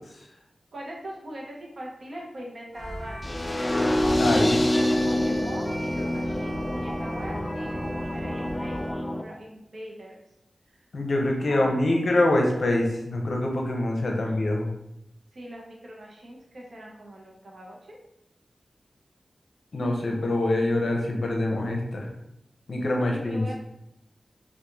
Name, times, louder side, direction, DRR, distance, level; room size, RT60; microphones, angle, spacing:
voice 1, 0.7-3.5 4.2-4.3 5.1-7.8 8.1-10.2 10.7-10.8 11.5-12.2 14.2-14.3 15.3-18.0 23.0-23.6, equal, 65° right, -2 dB, 0.8 m, -41 dB
sound 1, 2.7-8.9, equal, 5° left, 1.0 m, -38 dB
sound 2, 3.2-9.2, left 1 dB, 25° left, 0.3 m, -26 dB
voice 2, 4.2-4.6 10.9-14.7 19.7-22.1 22.7-23.5, left 1 dB, 75° left, 1 dB, 0.6 m, -25 dB
2.9 x 2.4 x 3.6 m, 0.82 s
wide cardioid pair, 65°, 0 cm